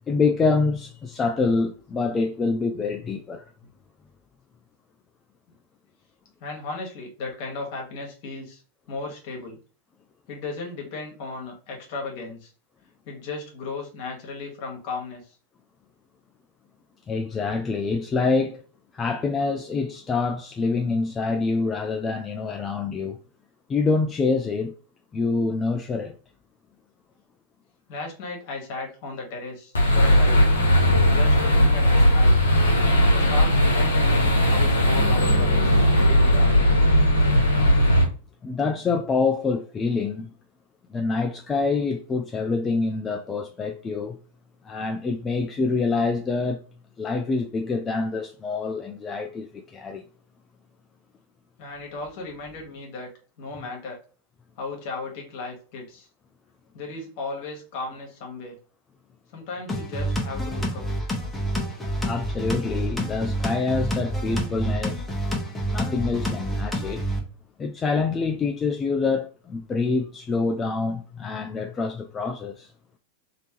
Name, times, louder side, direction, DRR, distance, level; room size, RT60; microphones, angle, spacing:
voice 1, 0.1-3.5 17.1-18.6 18.9-23.2 23.7-24.7 25.1-26.2 38.4-40.3 40.9-44.2 44.6-46.6 47.0-50.0 62.0-65.0 65.7-67.0 67.6-72.7, left 4 dB, 20° left, 0.4 m, -26 dB
voice 2, 6.4-8.6 8.9-9.6 10.3-12.5 13.1-15.3 27.9-30.5 31.1-32.4 33.1-36.6 51.6-53.1 53.4-54.0 54.6-56.1 56.7-58.6 59.3-60.8, left 3 dB, 45° left, 1.4 m, -35 dB
sound 1, 29.7-38.0, equal, 70° left, 0.9 m, -18 dB
sound 2, 59.7-67.2, right 1 dB, 5° left, 1.1 m, -28 dB
3.3 x 2.8 x 2.9 m
figure-of-eight pair, 90°, 0 cm